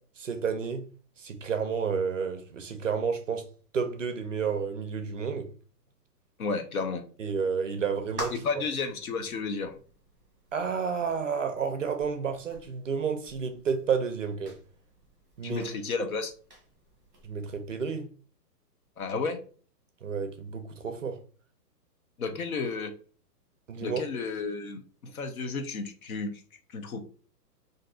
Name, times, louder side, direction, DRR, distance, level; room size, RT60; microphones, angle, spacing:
voice 1, 0.2-0.9 1.2-3.5 3.7-5.5 7.2-8.3 10.5-14.6 15.4-15.7 16.0-16.1 17.2-18.1 20.0-21.2 23.7-24.0, right 6 dB, 50° right, 0.5 m, -31 dB
voice 2, 6.4-7.0 8.3-9.7 15.4-16.3 19.0-19.4 22.2-22.9 23.8-26.4 26.7-27.0, left 4 dB, 60° left, 0.7 m, -32 dB
sound 1, 7.7-17.8, equal, 5° left, 0.8 m, -48 dB
2.6 x 2.3 x 3.6 m
hypercardioid pair, 180°, 49 cm